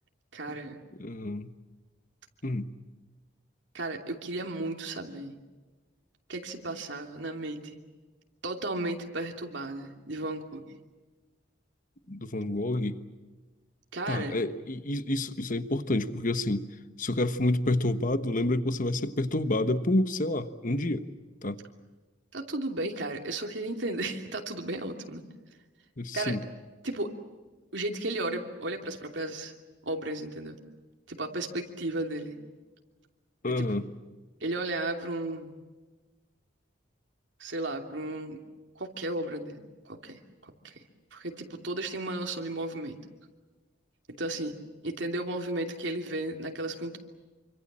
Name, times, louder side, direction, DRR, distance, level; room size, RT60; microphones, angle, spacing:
voice 1, 0.3-0.8 3.7-5.4 6.3-7.8 8.4-10.7 13.9-14.4 22.3-25.2 26.1-26.4 26.8-27.1 27.7-29.5 29.8-30.6 31.1-32.4 33.6-33.8 34.4-35.6 37.4-38.4 38.7-39.6 39.8-40.8 41.1-43.0 44.2-44.5 44.8-47.0, right 2 dB, 70° right, 3 dB, 2.9 m, -34 dB
voice 2, 1.0-1.5 2.4-2.7 12.1-12.9 14.1-16.7 17.0-21.0 21.4-21.6 26.0-26.4 33.4-33.9, left 1 dB, 45° left, 10 dB, 1.3 m, -28 dB
27.0 x 25.5 x 7.5 m, 1.2 s
head